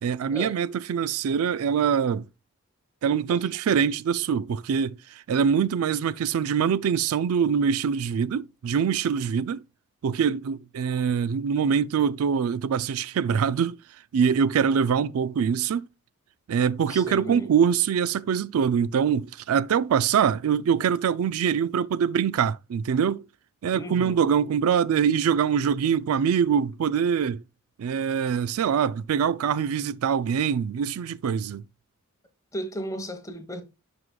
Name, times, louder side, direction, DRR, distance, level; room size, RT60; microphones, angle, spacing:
voice 1, 0.0-2.3 3.0-9.6 10.0-13.8 14.1-15.9 16.5-23.2 23.6-27.4 27.8-31.6, right 7 dB, 75° right, 0.4 m, -24 dB
voice 2, 16.9-17.5 23.7-24.2 32.5-33.6, equal, 15° left, 1.0 m, -35 dB
11.0 x 4.8 x 2.3 m
head